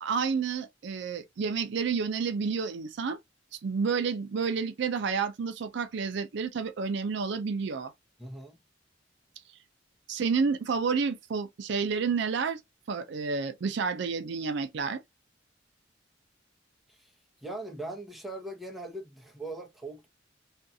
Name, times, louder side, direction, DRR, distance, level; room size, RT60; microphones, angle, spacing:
voice 1, 0.0-3.2 3.6-7.9 10.1-12.6 12.9-15.0, right 5 dB, 65° right, 0.4 m, -30 dB
voice 2, 8.2-8.6 16.9-17.1 17.4-20.1, right 2 dB, ahead, 0.7 m, -40 dB
2.5 x 2.3 x 2.5 m
head